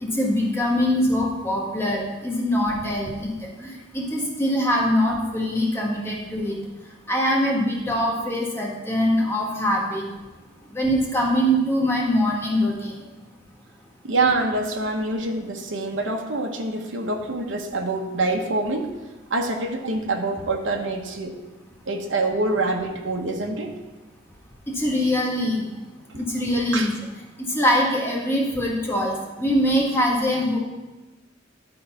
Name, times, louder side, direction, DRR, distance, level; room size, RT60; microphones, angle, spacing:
voice 1, 0.0-3.3 3.6-6.6 7.1-10.0 10.7-13.0 24.7-25.6 26.1-26.9 27.5-30.6, equal, 15° left, -3 dB, 1.5 m, -23 dB
voice 2, 14.0-18.9 19.3-21.4 21.9-23.7 26.1-26.2 26.7-26.9, right 2 dB, 75° right, 2 dB, 1.0 m, -25 dB
11.0 x 3.9 x 5.7 m, 1.2 s
head